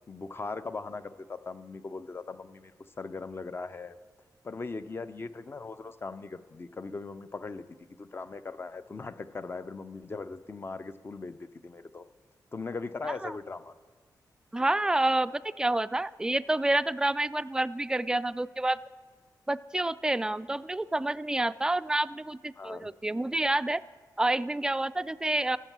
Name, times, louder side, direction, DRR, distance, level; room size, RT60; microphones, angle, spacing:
voice 1, 0.1-2.7 3.0-4.0 4.4-7.7 8.0-12.0 12.5-13.7 22.6-22.9, left 3 dB, 35° left, 12 dB, 0.6 m, -39 dB
voice 2, 14.5-18.8 19.5-23.8 24.2-25.6, right 2 dB, 10° right, 15 dB, 0.3 m, -28 dB
14.5 x 7.3 x 6.1 m, 1.5 s
cardioid pair, 90°, 7 cm